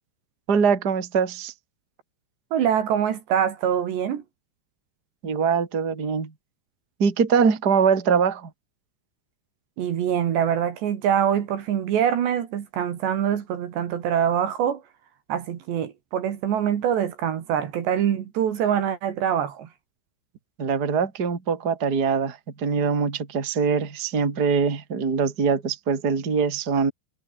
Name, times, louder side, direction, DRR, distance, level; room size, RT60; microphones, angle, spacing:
voice 1, 0.5-1.5 5.2-6.3 7.0-8.5 20.6-26.9, right 6 dB, 25° right, 2.7 m, -23 dB
voice 2, 2.5-4.2 9.8-14.8 15.3-19.7, right 9 dB, 65° right, 4.1 m, -24 dB
omnidirectional pair, 5.8 m